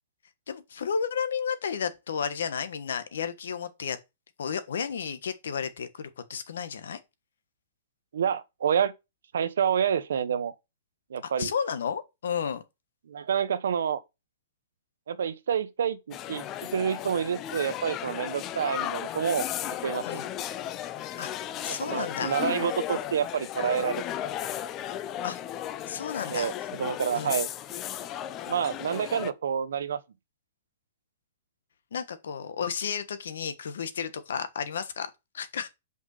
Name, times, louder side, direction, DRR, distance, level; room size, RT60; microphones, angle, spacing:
voice 1, 0.5-4.0 4.4-7.0 11.4-12.6 20.1-20.3 21.2-22.4 25.2-25.4 25.9-26.5 27.1-27.4 31.9-35.7, left 7 dB, 80° left, 1.4 m, -32 dB
voice 2, 8.1-8.9 9.3-10.5 11.1-11.5 13.1-14.0 15.1-16.4 16.7-19.5 19.8-20.2 21.7-24.0 26.3-26.5 26.8-27.5 28.5-30.0, right 7 dB, 85° right, 1.0 m, -28 dB
sound 1, 16.1-29.3, left 11 dB, 20° left, 0.4 m, -35 dB
5.6 x 5.3 x 6.6 m
hypercardioid pair, 170°, 0 cm